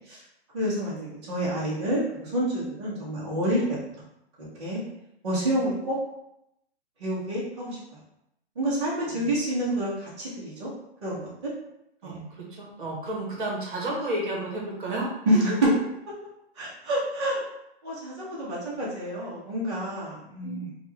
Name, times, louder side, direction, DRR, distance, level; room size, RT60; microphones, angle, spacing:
voice 1, 0.5-3.6 4.6-4.8 5.2-6.0 7.0-7.8 8.6-10.7 11.0-11.5 12.0-12.2 15.3-15.7 16.6-17.4 17.8-20.7, right 1 dB, 25° right, -10 dB, 0.8 m, -28 dB
voice 2, 12.0-15.1 20.4-20.6, right 1 dB, 50° right, -2 dB, 1.0 m, -32 dB
3.2 x 2.3 x 3.2 m, 0.81 s
hypercardioid pair, 180°, 33 cm